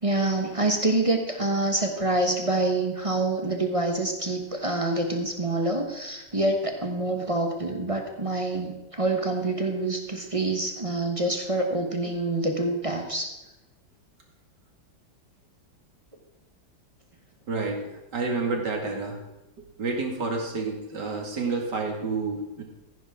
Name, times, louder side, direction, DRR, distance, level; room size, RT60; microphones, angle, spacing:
voice 1, 0.0-13.3, right 2 dB, 20° right, 3 dB, 1.0 m, -26 dB
voice 2, 17.5-19.2 19.8-22.6, right 3 dB, 60° right, 1 dB, 2.7 m, -29 dB
15.0 x 11.0 x 3.7 m, 0.98 s
omnidirectional pair, 2.1 m